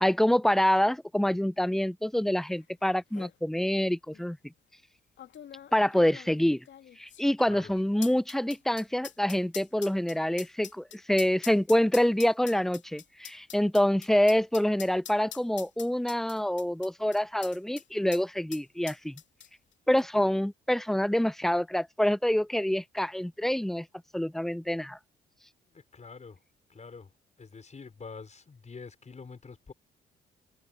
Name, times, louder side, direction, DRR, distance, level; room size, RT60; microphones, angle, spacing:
voice 1, 0.0-4.4 5.7-6.6 7.0-19.2 19.9-23.9 24.1-25.0, left 1 dB, ahead, 0.3 m, -26 dB
sound 1, 2.6-2.7 2.9-3.4 4.1-4.2 5.2-17.9 18.1-18.2 18.5-19.7 20.0-20.1, left 10 dB, 70° left, 2.6 m, -45 dB
voice 2, 25.7-26.4 26.7-27.1 27.4-29.7, left 4 dB, 35° left, 4.8 m, -46 dB
cardioid pair, 70°, 20 cm